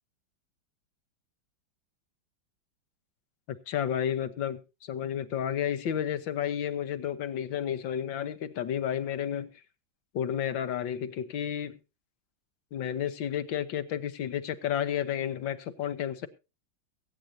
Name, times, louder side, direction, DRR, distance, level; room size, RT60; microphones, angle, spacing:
voice 1, 3.5-9.5 10.1-11.8 12.7-16.3, left 9 dB, 80° left, 1.8 m, -31 dB
22.5 x 9.2 x 2.7 m
omnidirectional pair, 2.1 m